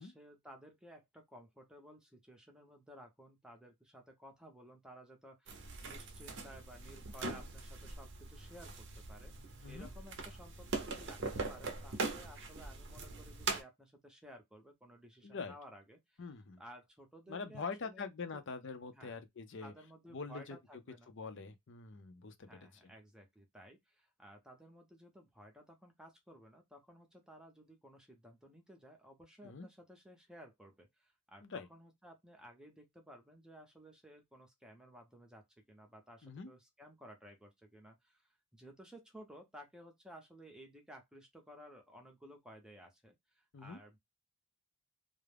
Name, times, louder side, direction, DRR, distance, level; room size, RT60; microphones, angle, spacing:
voice 1, 0.0-16.3 16.6-18.4 18.9-19.2 19.6-21.1 22.5-44.0, equal, 5° right, 0.6 m, -56 dB
sound 1, 5.5-13.6, right 3 dB, 55° right, 0.6 m, -42 dB
voice 2, 15.2-15.6 16.2-16.6 17.3-19.7 20.1-20.6 21.1-22.7 29.4-29.7 31.4-31.7 36.2-36.5 43.5-43.8, left 4 dB, 55° left, 0.5 m, -44 dB
2.4 x 2.1 x 3.3 m
head